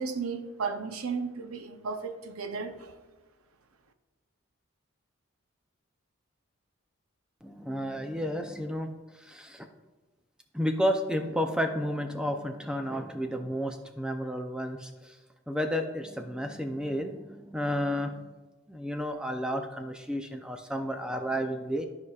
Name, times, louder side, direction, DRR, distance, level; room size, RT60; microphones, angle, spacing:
voice 1, 0.0-2.9, right 5 dB, 90° right, 0.7 m, -34 dB
voice 2, 7.4-8.9 9.2-9.7 10.5-15.1 15.5-18.3 18.7-21.8, equal, 5° right, 0.4 m, -32 dB
13.0 x 4.8 x 2.4 m
head